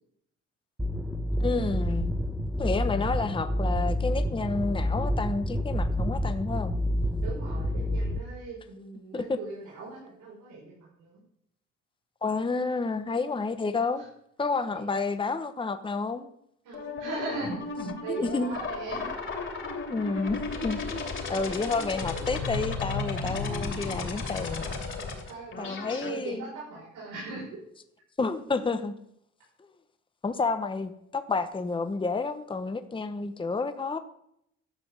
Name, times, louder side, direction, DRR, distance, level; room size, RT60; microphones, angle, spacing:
sound 1, 0.8-8.2, equal, 5° right, 1.1 m, -28 dB
voice 1, 1.4-2.1 2.6-6.7 9.1-9.4 12.2-14.0 14.4-16.3 18.1-18.6 19.9-21.0 21.3-24.7 25.6-26.5 28.2-28.9 30.2-34.0, left 4 dB, 15° left, 0.9 m, -30 dB
voice 2, 7.2-11.2 14.0-14.1 14.7-14.9 16.6-17.6 18.0-19.1 25.3-27.6, right 3 dB, 90° right, 5.3 m, -39 dB
sound 2, 16.7-26.1, left 3 dB, 40° left, 3.0 m, -34 dB
11.5 x 6.0 x 7.6 m
cardioid pair, 90°, 30 cm